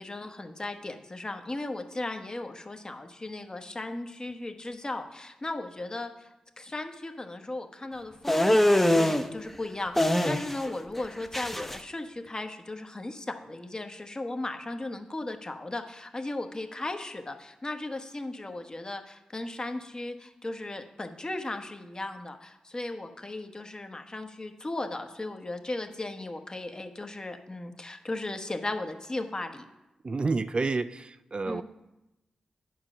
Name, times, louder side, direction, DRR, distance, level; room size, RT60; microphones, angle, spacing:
voice 1, 0.0-29.6 31.5-31.6, left 2 dB, 35° left, 6 dB, 1.1 m, -36 dB
sound 1, 8.3-9.2 10.0-10.7 11.0-11.8, left 1 dB, 10° left, 0.8 m, -23 dB
voice 2, 30.0-31.6, right 3 dB, 45° right, 12 dB, 0.4 m, -29 dB
9.7 x 4.6 x 6.1 m, 0.98 s
cardioid pair, 45°, 2 cm